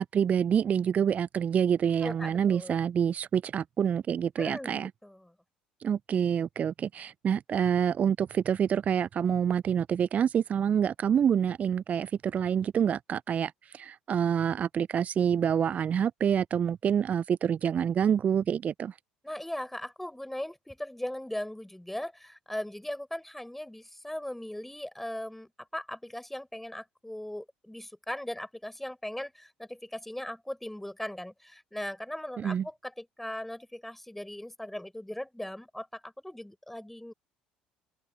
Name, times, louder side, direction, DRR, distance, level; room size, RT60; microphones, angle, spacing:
voice 1, 0.0-4.9 5.8-19.0 32.4-32.7, right 8 dB, 40° right, 0.5 m, -27 dB
voice 2, 2.0-2.8 4.4-5.3 19.2-37.1, left 1 dB, 5° left, 6.5 m, -39 dB
figure-of-eight pair, 60°, 4 cm